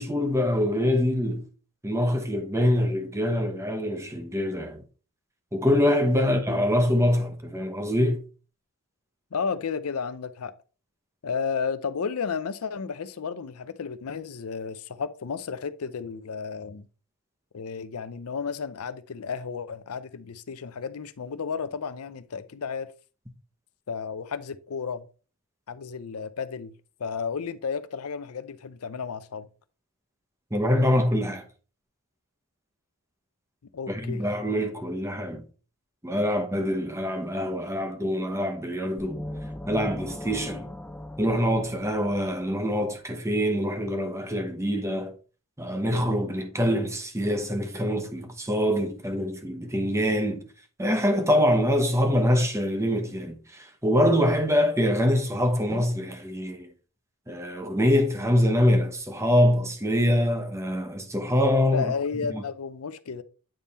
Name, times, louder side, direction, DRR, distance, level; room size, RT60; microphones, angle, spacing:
voice 1, 0.0-1.4 1.8-4.8 5.5-8.2 30.5-31.4 33.9-35.4 36.0-39.2 39.7-40.7 41.2-45.1 45.6-50.4 50.8-56.7 57.3-61.9 62.3-62.4, equal, 15° right, 1.1 m, -24 dB
voice 2, 9.3-10.5 11.2-16.9 17.5-22.9 23.9-25.1 25.7-26.7 27.0-29.5 33.7-34.2 61.7-63.2, left 5 dB, 80° left, 0.6 m, -32 dB
sound 1, 39.0-42.7, left 1 dB, 10° left, 0.5 m, -38 dB
8.9 x 3.6 x 4.1 m
head